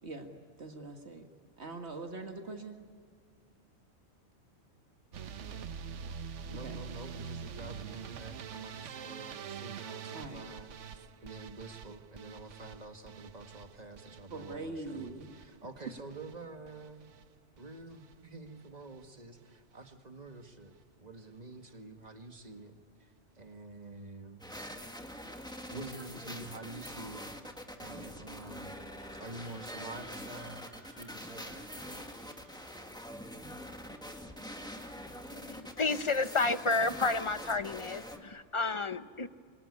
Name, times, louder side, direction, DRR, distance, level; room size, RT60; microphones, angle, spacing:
voice 1, 0.0-1.3 1.6-2.8 6.6-6.8 10.1-10.5 14.3-15.3, right 2 dB, 65° right, 4 dB, 2.0 m, -42 dB
sound 1, 5.1-17.3 17.6-18.1 18.5-19.0 19.4-19.6 19.9-20.0 20.3-20.4, right 7 dB, 85° right, 1.2 m, -45 dB
voice 2, 6.5-17.1 17.6-24.4 25.7-27.3 27.8-28.9 29.2-32.1, right 2 dB, 35° right, 5 dB, 2.0 m, -48 dB
sound 2, 24.4-38.2, equal, 5° left, 1.8 m, -45 dB
sound 3, 29.0-32.8, equal, 45° left, 7.1 m, -59 dB
voice 3, 35.3-39.3, left 3 dB, 30° left, 12 dB, 0.8 m, -31 dB
26.0 x 23.0 x 9.7 m, 2.1 s
omnidirectional pair, 1.2 m